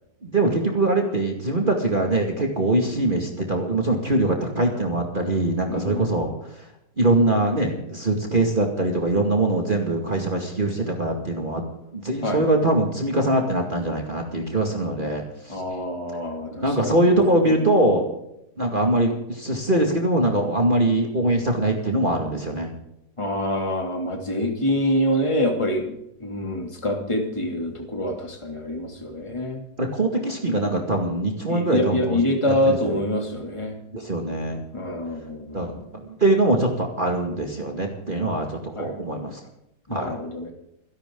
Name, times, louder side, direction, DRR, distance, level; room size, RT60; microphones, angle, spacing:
voice 1, 0.2-6.7 7.0-11.6 11.9-15.6 16.5-18.1 18.6-22.7 29.8-32.2 32.5-33.0 33.9-34.6 35.5-39.5 39.9-40.2, right 1 dB, 30° right, 2 dB, 2.4 m, -23 dB
voice 2, 5.7-6.1 12.2-12.4 15.5-17.0 23.2-29.6 31.5-33.8 34.7-35.8 38.8-38.9 39.9-40.5, left 1 dB, 15° left, 1 dB, 3.0 m, -26 dB
29.5 x 11.5 x 3.9 m, 0.78 s
omnidirectional pair, 1.8 m